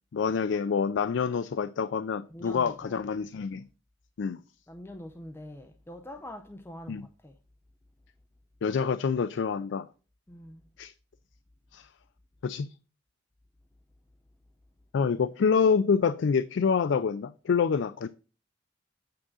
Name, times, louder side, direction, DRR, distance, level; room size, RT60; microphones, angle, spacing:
voice 1, 0.1-3.6 4.2-4.4 6.9-7.0 8.6-9.9 10.8-10.9 11.7-11.9 12.4-12.7 14.9-18.1, left 6 dB, 65° left, 0.4 m, -27 dB
voice 2, 2.3-3.0 4.7-7.4 10.3-10.6, left 1 dB, 10° left, 0.5 m, -44 dB
8.7 x 3.7 x 6.1 m
head